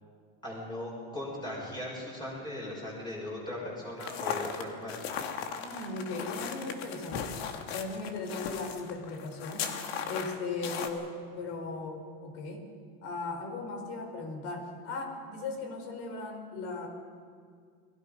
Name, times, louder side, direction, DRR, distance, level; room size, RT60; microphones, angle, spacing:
voice 1, 0.4-5.2, left 1 dB, 15° left, -4 dB, 6.6 m, -38 dB
sound 1, 4.0-10.9, left 7 dB, 80° left, 2.4 m, -37 dB
voice 2, 5.6-7.4 7.7-9.7 10.0-12.7 13.0-16.9, left 3 dB, 50° left, 4 dB, 4.8 m, -37 dB
29.5 x 21.0 x 5.5 m, 2.2 s
supercardioid pair, 150°, 30 cm